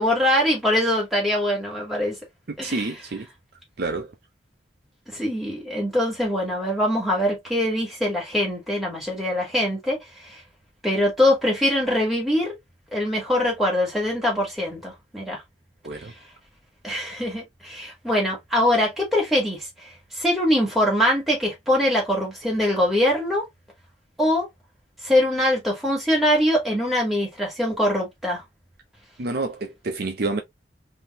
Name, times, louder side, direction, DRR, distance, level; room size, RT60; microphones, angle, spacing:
voice 1, 0.0-2.2 2.6-2.9 5.1-10.4 10.8-12.6 12.9-15.4 16.8-23.4 24.2-24.5 25.0-28.4, left 1 dB, ahead, 1.9 m, -23 dB
voice 2, 2.5-3.3 3.8-4.1 15.8-16.1 29.2-30.4, right 3 dB, 50° right, 0.6 m, -28 dB
3.6 x 2.7 x 2.9 m
head